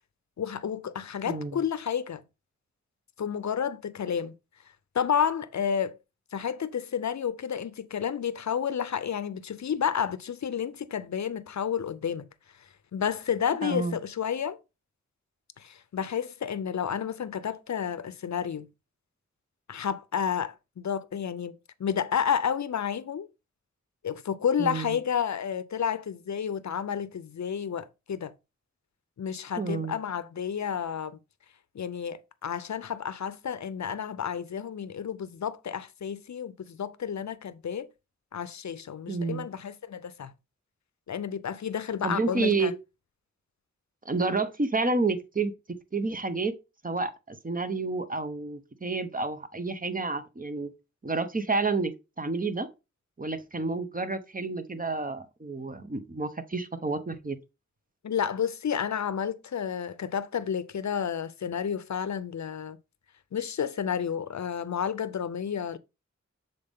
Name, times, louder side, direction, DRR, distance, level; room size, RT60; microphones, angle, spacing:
voice 1, 0.4-2.2 3.2-4.3 4.9-6.0 6.3-12.3 12.9-14.6 15.6-18.7 19.7-23.3 24.0-28.3 29.2-31.2 31.7-37.9 38.3-40.3 41.1-42.7 58.0-62.8 63.3-65.8, left 8 dB, 75° left, 0.6 m, -31 dB
voice 2, 1.3-1.6 13.6-14.0 24.6-25.0 29.6-29.9 39.1-39.5 42.0-42.7 44.0-45.5 45.9-46.5 46.8-50.7 51.0-51.9 52.2-52.7 53.2-57.4, right 3 dB, 30° right, 0.8 m, -29 dB
6.7 x 4.1 x 3.5 m
wide cardioid pair, 55°, 29 cm